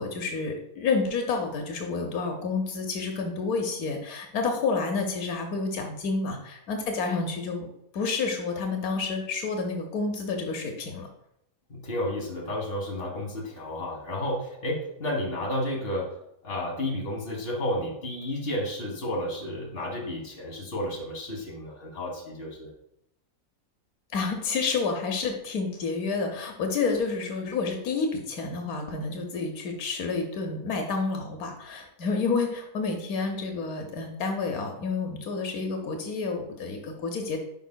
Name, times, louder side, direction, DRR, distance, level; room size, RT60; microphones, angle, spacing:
voice 1, 0.0-7.7 7.9-11.1 24.1-37.4, left 4 dB, 85° left, 4 dB, 1.3 m, -29 dB
voice 2, 11.7-16.1 16.4-22.7, left 1 dB, 45° left, -1 dB, 1.6 m, -32 dB
9.9 x 5.1 x 2.2 m, 0.80 s
omnidirectional pair, 1.5 m